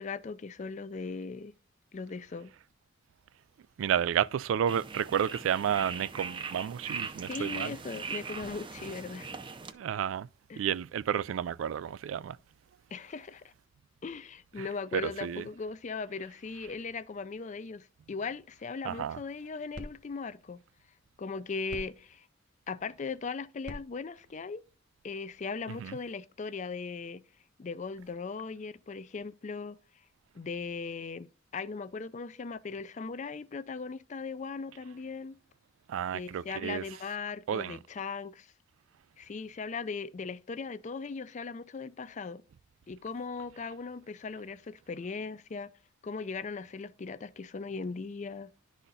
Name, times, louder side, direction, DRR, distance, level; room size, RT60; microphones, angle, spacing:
voice 1, 0.0-1.5 1.9-2.5 7.3-9.3 10.5-10.6 12.9-13.5 14.0-20.6 21.2-22.3 22.7-24.6 25.0-27.2 27.6-29.8 30.3-35.4 36.1-38.5 39.2-42.4 42.9-45.7 46.0-48.5, left 4 dB, 40° left, 0.4 m, -38 dB
voice 2, 3.8-7.8 9.7-10.3 10.6-12.4 14.6-14.7 14.9-15.5 18.8-19.2 25.7-26.0 35.9-36.8 37.5-37.8, right 9 dB, 85° right, 0.3 m, -31 dB
sound 1, 4.7-9.7, right 5 dB, 25° right, 0.5 m, -40 dB
sound 2, 19.2-25.6, equal, 55° right, 1.3 m, -51 dB
11.0 x 4.2 x 3.9 m
head